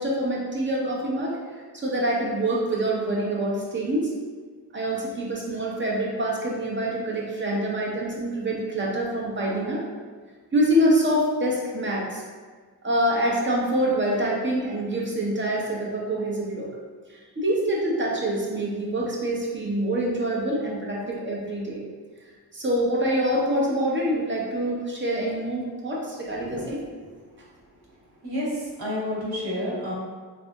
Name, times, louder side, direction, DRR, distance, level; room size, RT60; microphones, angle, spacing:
voice 1, 0.0-1.3 1.7-4.1 4.7-9.8 10.5-12.2 12.8-16.7 17.1-21.9 22.5-26.8, right 1 dB, 30° right, -3 dB, 0.8 m, -25 dB
voice 2, 28.2-29.9, left 1 dB, 65° right, -7 dB, 1.3 m, -30 dB
3.4 x 2.6 x 2.3 m, 1.5 s
cardioid pair, 65°, 41 cm